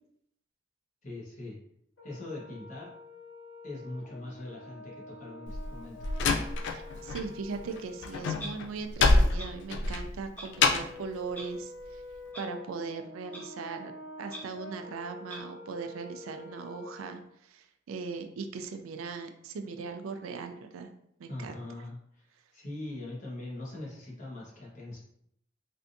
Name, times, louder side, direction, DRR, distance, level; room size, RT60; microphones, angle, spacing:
voice 1, 1.0-1.6 2.0-2.9 3.6-6.1 21.3-22.3 22.5-25.0, left 2 dB, 40° left, -5 dB, 1.0 m, -41 dB
Brass instrument, 2.0-8.4 10.5-17.1, left 2 dB, 80° left, 1.1 m, -48 dB
Slam, 5.5-7.3 7.5-11.0, left 3 dB, 60° left, 0.3 m, -26 dB
voice 2, 6.7-12.0 12.4-13.9 14.2-17.2 17.5-20.9 21.2-21.5, right 4 dB, 85° right, 6 dB, 0.4 m, -39 dB
Clock, 8.4-8.5 9.4-9.5 10.4-10.5 11.3-11.4 12.3-12.4 13.3-13.4 14.3-14.4 15.3-15.4, equal, 10° left, 0.5 m, -41 dB
3.4 x 2.6 x 2.6 m, 0.73 s
head